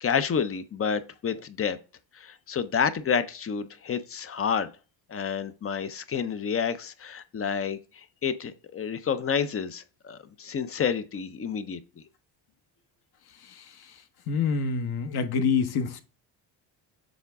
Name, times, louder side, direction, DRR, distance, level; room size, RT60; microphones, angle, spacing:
voice 1, 0.0-1.8 2.1-4.7 5.1-11.8, left 7 dB, 30° left, 0.5 m, -29 dB
voice 2, 14.3-16.0, left 5 dB, 50° left, 1.0 m, -26 dB
7.1 x 3.9 x 3.4 m
cardioid pair, 110°, 49 cm